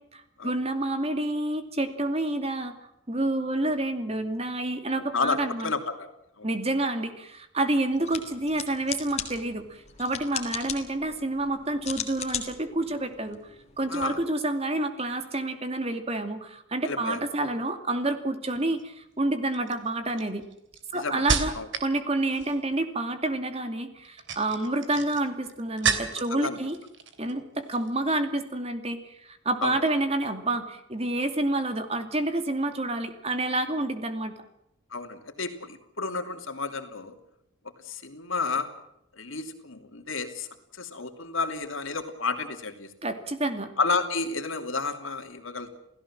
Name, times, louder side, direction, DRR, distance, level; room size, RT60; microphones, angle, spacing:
voice 1, 0.1-2.7 3.1-5.7 6.4-13.4 13.8-20.4 20.9-21.5 21.8-26.8 27.2-34.3 43.0-43.7, right 2 dB, 30° right, 8 dB, 2.4 m, -28 dB
voice 2, 5.1-6.1 6.4-6.5 13.9-14.2 16.8-17.2 20.9-21.2 21.5-21.7 26.3-26.6 29.6-29.7 34.9-37.1 37.8-38.7 39.2-40.5 40.7-42.9 43.8-45.8, left 4 dB, 70° left, 7 dB, 3.0 m, -31 dB
sound 1, 7.9-14.0, left 8 dB, 30° left, 3.4 m, -38 dB
sound 2, 18.5-18.8 19.5-21.9 22.2-22.7 24.0-26.4 26.7-27.4 27.6-27.9, right 5 dB, 60° right, 3.3 m, -31 dB
29.0 x 17.0 x 7.5 m, 0.82 s
head